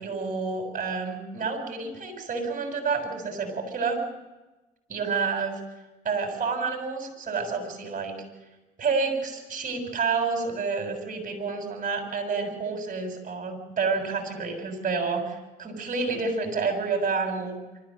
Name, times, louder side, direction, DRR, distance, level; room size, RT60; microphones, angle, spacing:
voice 1, 0.0-4.0 4.9-5.6 6.0-8.1 8.8-17.6, right 4 dB, 45° right, 4 dB, 7.0 m, -29 dB
25.5 x 14.0 x 7.7 m, 1.1 s
supercardioid pair, 75°, 19 cm